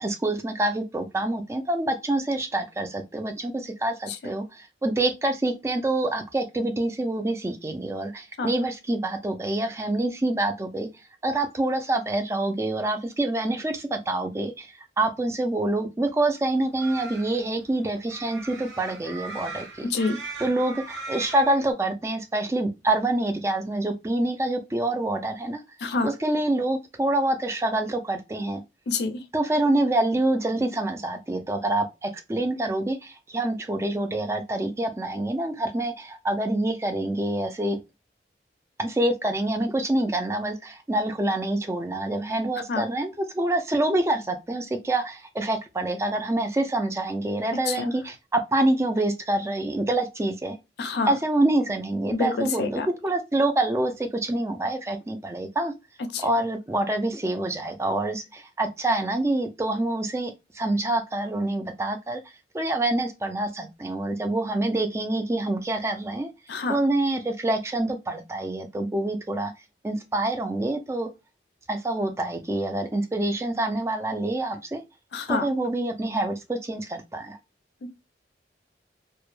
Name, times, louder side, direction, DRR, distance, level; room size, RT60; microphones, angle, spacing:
voice 1, 0.0-4.4 4.8-10.9 11.2-19.9 20.4-25.6 26.0-28.6 29.3-37.8 38.8-43.1 43.3-50.6 51.1-52.6 53.0-55.7 56.2-62.2 62.5-66.3 66.7-69.5 69.8-71.1 71.7-74.8 75.3-77.4, right 1 dB, 15° right, 0.3 m, -26 dB
sound 1, 16.5-21.7, right 3 dB, 90° right, 0.7 m, -39 dB
voice 2, 19.8-20.2 25.8-26.1 28.9-29.3 42.7-42.9 47.6-47.9 50.8-51.2 52.1-52.9 56.1-56.4 66.5-66.8 75.1-75.5 77.8-77.9, left 3 dB, 65° left, 0.4 m, -27 dB
2.1 x 2.0 x 3.0 m
head